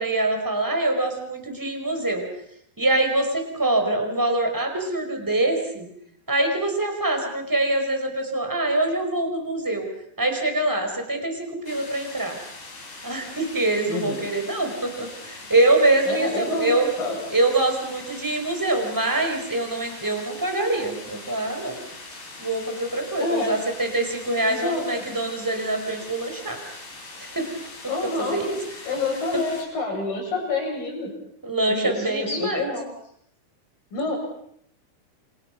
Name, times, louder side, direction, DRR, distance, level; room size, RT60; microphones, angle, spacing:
voice 1, 0.0-2.2 2.8-5.9 6.3-9.9 10.2-12.4 13.0-16.9 17.3-21.8 22.4-26.6 27.2-27.5 28.2-28.6 31.4-32.7, right 2 dB, 5° right, 4 dB, 4.4 m, -24 dB
sound 1, 11.6-29.6, left 3 dB, 80° left, 8.9 m, -41 dB
voice 2, 13.9-14.3 16.1-17.2 23.2-23.5 24.4-25.0 27.9-28.4 28.9-31.1 31.7-32.8 33.9-34.2, left 3 dB, 55° left, 1 dB, 9.2 m, -28 dB
29.0 x 27.0 x 6.0 m, 0.68 s
omnidirectional pair, 4.8 m